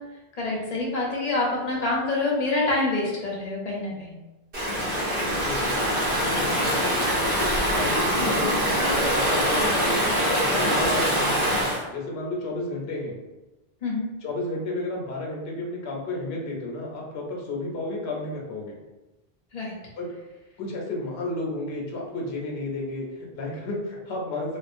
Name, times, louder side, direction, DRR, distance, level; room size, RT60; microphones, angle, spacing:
voice 1, 0.3-4.2 13.8-14.1 19.5-19.7, left 2 dB, 45° left, -3 dB, 0.6 m, -26 dB
Stream / Ocean, 4.5-11.8, equal, 60° right, 1.1 m, -24 dB
voice 2, 5.4-9.9 10.3-13.2 14.2-18.8 19.8-20.1 20.6-24.6, left 2 dB, 75° left, -1 dB, 0.8 m, -32 dB
2.4 x 2.1 x 2.4 m, 1.1 s
omnidirectional pair, 1.1 m